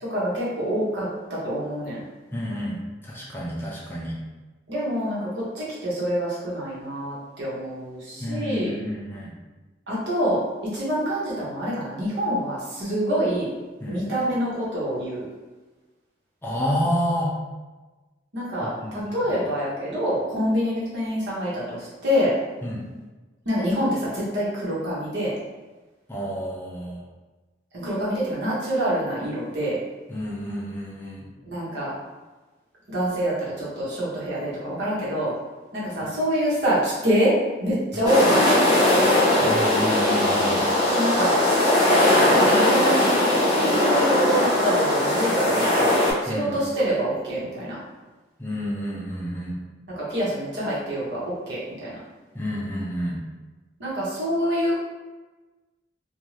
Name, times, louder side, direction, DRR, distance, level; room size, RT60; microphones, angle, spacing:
voice 1, 0.0-2.0 4.7-8.7 9.9-13.5 13.9-15.2 18.3-22.3 23.4-25.3 27.7-29.8 31.4-31.9 32.9-35.3 35.7-39.1 40.9-43.2 43.5-45.9 46.2-47.8 49.9-52.0 53.8-54.8, equal, 75° right, -7 dB, 1.1 m, -26 dB
voice 2, 2.3-4.2 8.2-9.3 13.8-14.0 16.4-17.3 18.6-19.1 22.6-22.8 26.1-27.0 30.1-31.3 37.9-38.1 39.4-40.6 46.3-46.6 48.4-49.6 52.3-53.2, equal, 10° left, -5 dB, 0.5 m, -29 dB
sound 1, 38.0-46.1, left 1 dB, 20° right, 0.9 m, -20 dB
2.6 x 2.3 x 3.1 m, 1.2 s
head